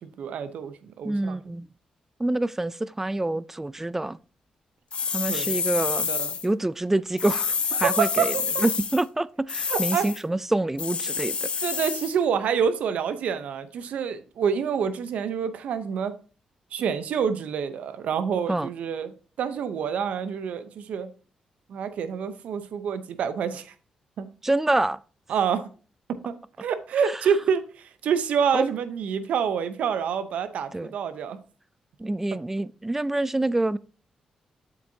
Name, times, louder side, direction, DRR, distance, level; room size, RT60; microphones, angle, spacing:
voice 1, 0.0-1.4 5.3-5.6 6.1-6.4 7.8-8.7 9.7-10.1 11.6-16.2 16.7-21.1 21.7-23.7 24.2-24.3 25.3-25.7 26.2-26.3 26.6-31.4, right 7 dB, 80° right, 0.7 m, -27 dB
voice 2, 1.0-1.7 2.2-4.2 5.1-6.1 6.4-11.5 18.5-18.7 24.4-25.0 27.0-27.2 28.5-28.7 30.7-30.9 32.0-33.8, right 2 dB, 15° right, 0.3 m, -26 dB
sound 1, 4.9-6.5 7.2-9.0 9.5-10.2 10.8-12.1, left 5 dB, 50° left, 0.7 m, -28 dB
7.9 x 7.6 x 2.8 m
cardioid pair, 80°, 2 cm